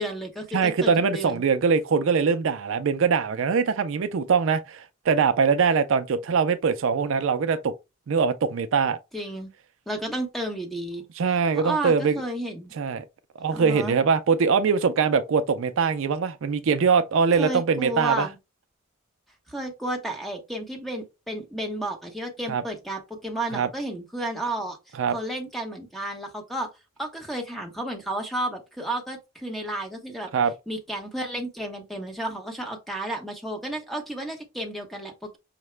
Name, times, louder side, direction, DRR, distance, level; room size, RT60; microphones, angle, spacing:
voice 1, 0.0-1.4 9.1-9.5 9.9-11.0 11.5-12.7 13.5-14.0 17.4-18.4 19.5-24.8 25.1-26.7 27.0-30.3 30.7-35.4, right 1 dB, ahead, 0.8 m, -32 dB
voice 2, 0.5-7.7 8.1-9.0 11.2-12.2 12.8-13.0 13.4-18.3 22.5-22.6 23.5-23.7 25.0-25.2 30.3-30.5, right 5 dB, 65° right, 0.4 m, -22 dB
5.7 x 2.1 x 3.1 m
head